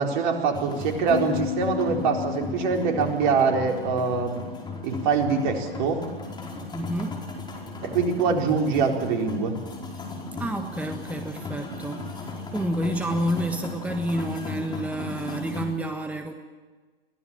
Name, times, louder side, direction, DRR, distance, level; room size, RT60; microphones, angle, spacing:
voice 1, 0.0-4.4 4.8-6.0 7.8-9.5, right 5 dB, 50° right, 2 dB, 4.4 m, -24 dB
sound 1, 0.5-15.7, left 3 dB, 15° left, 5.0 m, -36 dB
sound 2, 1.1-6.2, left 18 dB, 50° left, 1.5 m, -36 dB
voice 2, 6.7-7.2 10.4-16.3, right 1 dB, 5° right, 6 dB, 1.4 m, -29 dB
23.5 x 17.0 x 8.9 m, 1.4 s
hypercardioid pair, 105°, 30 cm